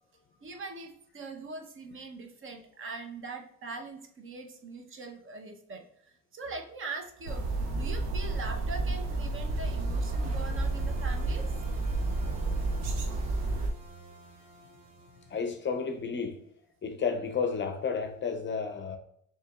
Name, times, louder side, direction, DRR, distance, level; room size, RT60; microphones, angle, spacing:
voice 1, 0.4-7.4 7.7-11.5, right 3 dB, 35° right, 0.8 m, -42 dB
sound 1, 7.2-13.7, right 2 dB, 90° right, 0.8 m, -30 dB
sound 2, 7.9-16.1, right 2 dB, 70° right, 1.5 m, -51 dB
voice 2, 15.3-16.4 16.8-19.0, left 5 dB, 35° left, 0.6 m, -32 dB
6.4 x 2.9 x 2.3 m
cardioid pair, 100°, 34 cm